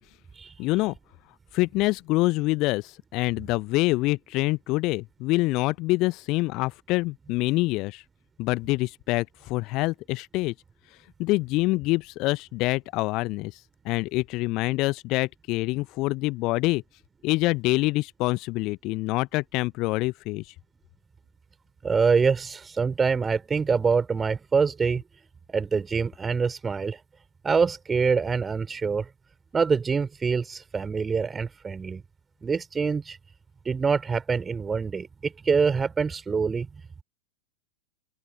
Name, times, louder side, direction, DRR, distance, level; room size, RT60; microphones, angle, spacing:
voice 1, 0.6-1.0 1.5-8.0 8.4-10.5 11.2-16.8 17.2-20.5, left 21 dB, 40° left, 0.8 m, -26 dB
voice 2, 21.8-25.0 25.5-27.0 27.4-29.1 29.5-32.0 32.4-33.2 33.6-36.7, right 5 dB, 15° right, 5.0 m, -25 dB
open air
figure-of-eight pair, 90°, 0 cm